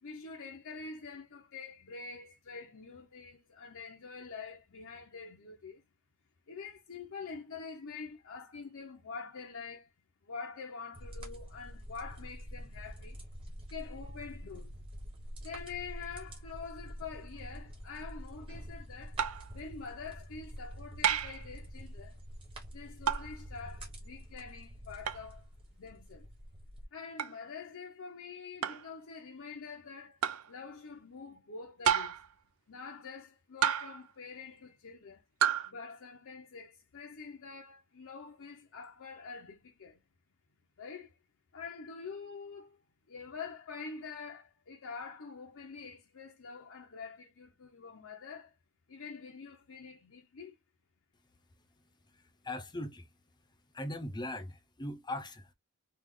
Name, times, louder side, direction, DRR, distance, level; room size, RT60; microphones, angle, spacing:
voice 1, 0.0-5.8 6.5-9.9 10.2-13.2 13.7-14.7 15.4-19.2 19.5-22.2 22.7-25.5 25.8-26.3 26.9-30.2 30.5-32.2 32.7-35.2 35.7-40.0 40.8-41.2 41.5-42.8 43.1-48.5 48.9-50.6, left 5 dB, 65° left, 0.7 m, -46 dB
sound 1, 10.9-26.8, equal, 25° right, 1.1 m, -46 dB
sound 2, 19.2-19.5 21.0-21.4 23.1-23.3 25.1-25.2 27.2-27.4 28.6-28.9 30.2-30.5 31.8-32.3 33.6-34.1 35.4-35.7, right 8 dB, 70° right, 0.5 m, -30 dB
voice 2, 52.1-53.1 53.7-55.5, left 1 dB, 20° left, 0.6 m, -40 dB
3.3 x 2.4 x 3.6 m
head